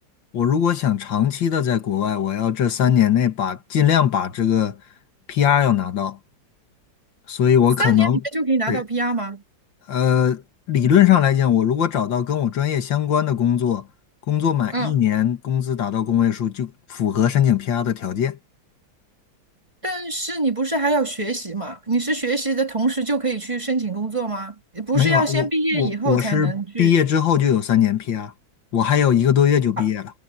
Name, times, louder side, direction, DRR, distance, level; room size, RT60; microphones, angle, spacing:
voice 1, 0.3-4.8 5.3-6.2 7.3-8.2 8.7-8.8 9.9-10.4 10.7-13.8 14.3-18.4 24.9-25.5 25.7-26.5 26.8-28.3 28.7-30.1, left 9 dB, 75° left, 2.3 m, -20 dB
voice 2, 7.8-9.4 14.7-14.9 19.8-26.9 29.8-29.9, right 2 dB, 15° right, 2.2 m, -24 dB
omnidirectional pair, 2.1 m